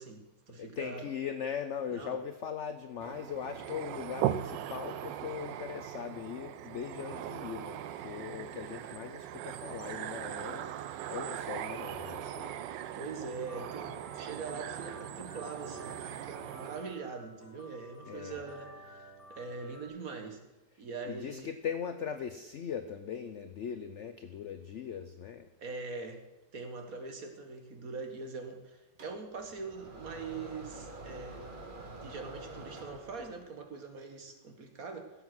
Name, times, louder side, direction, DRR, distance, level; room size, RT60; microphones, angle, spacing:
voice 1, 0.0-1.1 1.9-2.2 12.9-20.4 20.8-21.5 25.6-26.2 26.5-31.5 32.0-35.1, right 4 dB, 55° right, 5 dB, 1.9 m, -42 dB
voice 2, 0.5-10.7 11.1-12.6 18.1-18.4 21.1-25.5, left 7 dB, 60° left, 9 dB, 0.8 m, -40 dB
sound 1, 3.0-17.0, right 11 dB, 90° right, 1.4 m, -39 dB
sound 2, 13.3-19.9, equal, ahead, 5.2 m, -53 dB
sound 3, 29.0-33.5, right 2 dB, 30° right, 1.5 m, -47 dB
16.0 x 7.5 x 6.1 m, 1.1 s
omnidirectional pair, 1.9 m